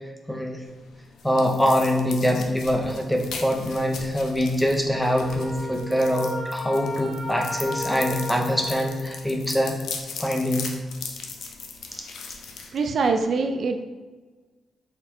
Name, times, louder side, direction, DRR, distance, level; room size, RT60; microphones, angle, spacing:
voice 1, 0.3-0.6 1.2-9.8 10.2-10.7 11.9-12.1, equal, 5° left, 2 dB, 0.5 m, -24 dB
sound 1, 0.7-13.3, left 5 dB, 90° left, 0.5 m, -39 dB
Wind instrument woodwind instrument, 4.9-9.0, equal, 15° right, 1.4 m, -34 dB
voice 2, 12.7-13.9, right 4 dB, 55° right, 5 dB, 0.3 m, -24 dB
4.3 x 4.1 x 2.6 m, 1.3 s
wide cardioid pair, 150°, 0 cm